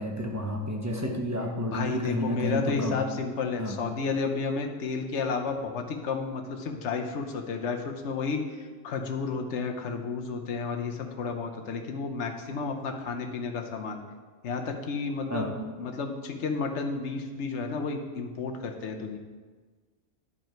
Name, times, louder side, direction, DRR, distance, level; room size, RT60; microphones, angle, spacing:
voice 1, 0.0-3.0 3.6-3.8 15.3-15.5, left 1 dB, 15° right, 1 dB, 0.8 m, -31 dB
voice 2, 1.7-8.4 8.8-14.0 14.4-15.5 15.8-19.2, left 4 dB, 60° left, 4 dB, 1.1 m, -31 dB
11.0 x 5.2 x 4.5 m, 1.4 s
omnidirectional pair, 1.5 m